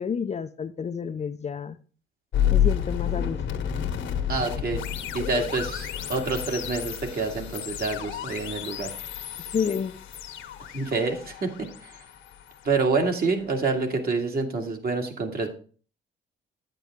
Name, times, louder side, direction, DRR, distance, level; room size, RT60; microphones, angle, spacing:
voice 1, 0.0-1.8 2.5-3.4 9.5-9.9, left 6 dB, 35° left, 0.5 m, -29 dB
sound 1, 2.3-13.4, left 9 dB, 75° left, 1.3 m, -30 dB
voice 2, 4.3-4.8 5.1-8.9 10.7-11.9 12.6-15.5, right 4 dB, 50° right, 2.2 m, -27 dB
9.0 x 9.0 x 3.6 m
cardioid pair, 90°, 20 cm